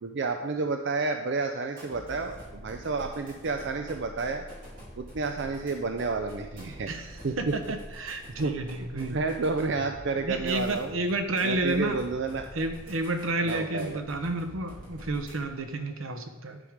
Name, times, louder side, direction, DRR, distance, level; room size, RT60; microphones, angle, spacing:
voice 1, 0.0-4.4 5.0-6.9 7.2-7.5 8.4-10.9 11.4-12.4 13.4-14.0, right 3 dB, 60° right, 5 dB, 0.5 m, -30 dB
sound 1, 1.7-15.7, equal, 45° right, 2.8 m, -46 dB
voice 2, 7.4-9.2 10.2-12.0 12.5-16.6, right 2 dB, 80° right, 6 dB, 0.9 m, -31 dB
10.0 x 4.9 x 5.1 m, 1.1 s
head